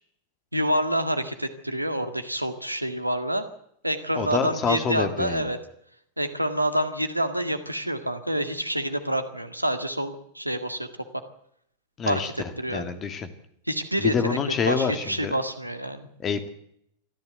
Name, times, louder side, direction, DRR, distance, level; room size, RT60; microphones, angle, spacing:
voice 1, 0.5-3.5 3.8-5.6 6.2-10.9 12.0-12.9 13.7-14.4 14.7-16.1, right 1 dB, 85° right, 8 dB, 1.8 m, -27 dB
voice 2, 4.2-5.4 12.0-12.3 12.7-13.3 14.0-15.3 16.2-16.5, left 6 dB, 25° left, 9 dB, 2.3 m, -26 dB
24.0 x 14.0 x 8.0 m, 0.73 s
figure-of-eight pair, 90°, 0 cm